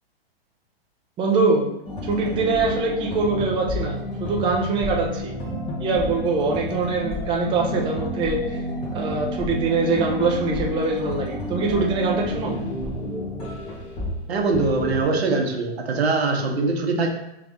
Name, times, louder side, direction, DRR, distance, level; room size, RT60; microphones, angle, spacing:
voice 1, 1.2-1.7 2.0-5.3 5.8-8.6 8.9-12.6, right 3 dB, 15° right, 0 dB, 0.5 m, -23 dB
sound 1, 1.9-14.3 14.5-15.0, equal, 15° left, 0.9 m, -30 dB
voice 2, 14.3-17.1, right 3 dB, 80° right, 2 dB, 1.1 m, -22 dB
3.3 x 3.2 x 3.8 m, 0.89 s
hypercardioid pair, 130°, 31 cm